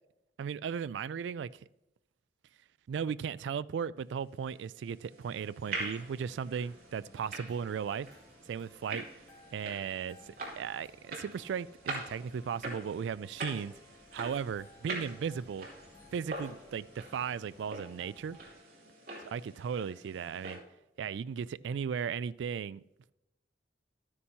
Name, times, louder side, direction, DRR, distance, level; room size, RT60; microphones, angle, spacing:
voice 1, 0.4-1.5 2.9-8.1 8.5-9.0 9.5-13.7 14.1-15.7 16.1-18.4 19.3-20.6 21.0-22.8, right 7 dB, 85° right, 0.3 m, -36 dB
sound 1, 4.6-20.6, right 2 dB, 55° right, 2.8 m, -44 dB
sound 2, 5.6-18.5, left 1 dB, 20° left, 1.0 m, -61 dB
13.0 x 9.8 x 2.8 m
head